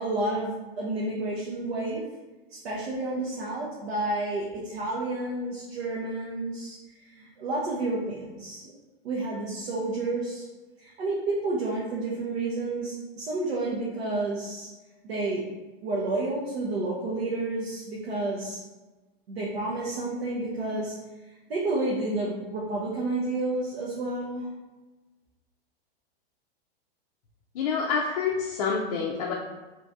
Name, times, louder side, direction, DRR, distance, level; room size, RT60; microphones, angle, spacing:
voice 1, 0.0-2.0 2.5-8.7 9.0-10.5 10.8-14.7 15.0-15.4 15.8-18.6 19.3-21.0 21.5-24.5, right 2 dB, 90° right, -5 dB, 0.9 m, -30 dB
voice 2, 27.5-29.3, left 5 dB, 40° left, -2 dB, 0.4 m, -27 dB
3.1 x 2.6 x 3.4 m, 1.2 s
supercardioid pair, 160°, 30 cm